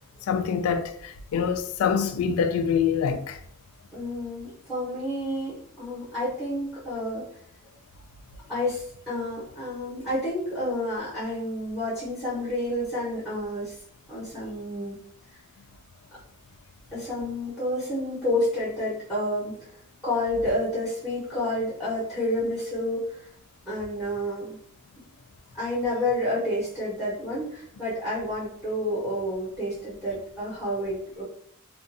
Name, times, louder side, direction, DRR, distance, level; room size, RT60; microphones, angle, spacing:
voice 1, 0.3-3.4, left 6 dB, 85° left, 0.3 m, -25 dB
voice 2, 3.9-7.3 8.5-13.7 14.1-15.0 16.9-19.5 20.0-23.1 23.7-24.5 25.5-31.2, left 1 dB, ahead, 1.0 m, -29 dB
2.5 x 2.4 x 2.6 m
head